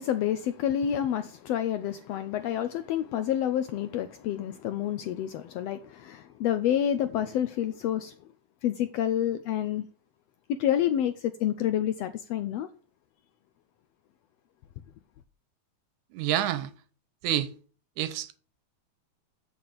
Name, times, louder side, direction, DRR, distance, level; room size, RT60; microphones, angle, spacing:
voice 1, 0.0-8.1 8.6-9.8 10.6-12.7, left 10 dB, 80° left, 1.5 m, -28 dB
voice 2, 16.1-16.7 17.2-17.5 18.0-18.4, right 12 dB, 80° right, 2.2 m, -28 dB
8.7 x 5.9 x 6.6 m
omnidirectional pair, 3.4 m